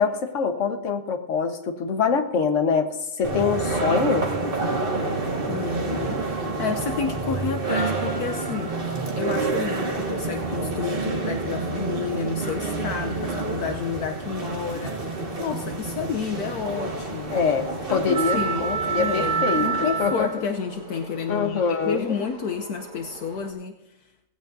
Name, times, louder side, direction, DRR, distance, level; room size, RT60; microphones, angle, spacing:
voice 1, 0.0-2.9 3.2-4.3 17.3-20.3 21.3-22.1, left 5 dB, 50° left, 6 dB, 1.5 m, -24 dB
sound 1, 3.2-20.4, right 3 dB, 35° right, 1.8 m, -28 dB
voice 2, 5.5-8.7 9.1-17.4 17.9-18.7 19.0-24.1, left 6 dB, 70° left, 5 dB, 1.3 m, -30 dB
sound 2, 15.3-23.5, right 1 dB, 70° right, 3.2 m, -42 dB
18.0 x 16.0 x 2.7 m, 0.95 s
omnidirectional pair, 1.8 m